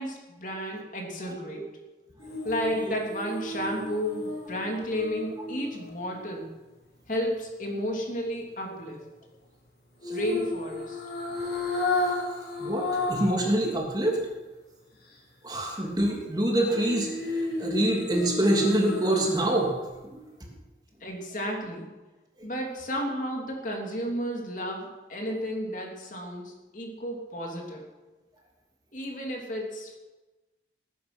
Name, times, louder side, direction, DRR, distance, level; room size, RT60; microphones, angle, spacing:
voice 1, 0.0-1.7 2.4-6.5 7.1-9.1 10.1-11.0 21.0-21.9 22.4-27.9 28.9-30.0, equal, 45° left, 1 dB, 3.1 m, -32 dB
voice 2, 1.3-1.6 2.8-2.9 10.0-10.2 12.6-14.2 15.4-17.1 17.6-19.7 20.0-20.5 22.4-22.5, right 1 dB, 25° right, 0 dB, 2.8 m, -26 dB
sound 1, 2.2-6.4 10.0-13.4 13.8-13.9 16.7-19.6 19.9-20.0, left 2 dB, 70° left, 6.1 m, -32 dB
19.5 x 10.0 x 6.2 m, 1.1 s
head